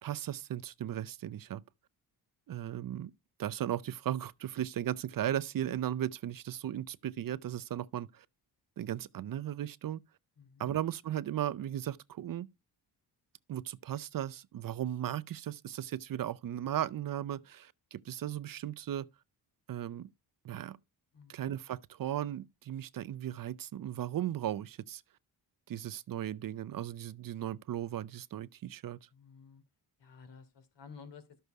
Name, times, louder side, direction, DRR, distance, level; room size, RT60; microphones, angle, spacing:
voice 1, 0.0-1.6 2.5-3.1 3.4-8.3 8.8-10.0 10.6-12.5 13.5-19.1 19.7-20.1 20.4-20.8 21.3-25.0 25.7-29.0, right 11 dB, 55° right, 0.6 m, -36 dB
voice 2, 10.4-10.7 21.1-21.4 29.1-29.6 30.0-31.2, left 5 dB, 80° left, 3.1 m, -53 dB
12.5 x 6.8 x 4.6 m
wide cardioid pair, 145°, 41 cm